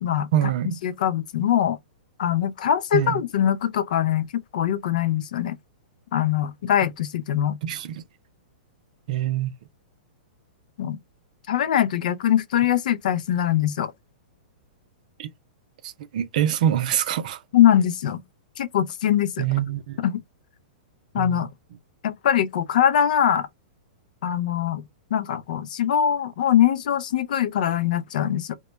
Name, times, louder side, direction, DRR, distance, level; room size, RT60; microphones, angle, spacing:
voice 1, 0.3-0.8 2.9-3.2 7.6-8.0 9.1-9.5 15.2-15.3 15.8-17.4 19.4-20.0 21.1-21.5, right 11 dB, 60° right, 0.5 m, -25 dB
voice 2, 0.8-1.8 2.2-5.6 6.1-7.6 10.8-11.0 11.5-13.9 17.5-18.2 18.6-19.5 20.0-20.2 21.1-21.5 22.0-23.5 24.2-24.8 25.1-28.5, left 10 dB, 65° left, 0.5 m, -22 dB
2.2 x 2.1 x 2.9 m
hypercardioid pair, 120°, 5 cm